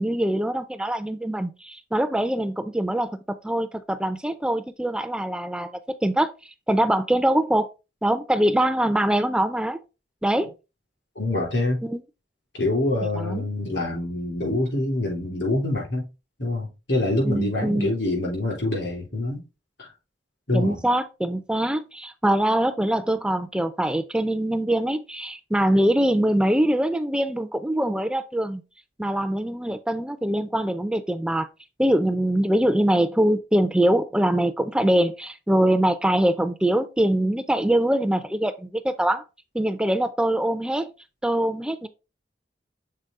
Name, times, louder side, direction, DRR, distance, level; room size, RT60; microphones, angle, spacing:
voice 1, 0.0-6.3 6.7-7.7 8.0-9.8 10.2-10.5 11.8-12.0 13.1-13.5 17.2-17.9 20.5-28.6 29.0-31.5 31.8-39.2 39.5-40.9 41.2-41.9, right 1 dB, 5° right, 0.4 m, -23 dB
voice 2, 11.2-11.8 12.5-16.0 16.4-19.4 19.8-19.9 20.5-20.8, left 2 dB, 80° left, 4.1 m, -25 dB
6.7 x 3.9 x 3.5 m
head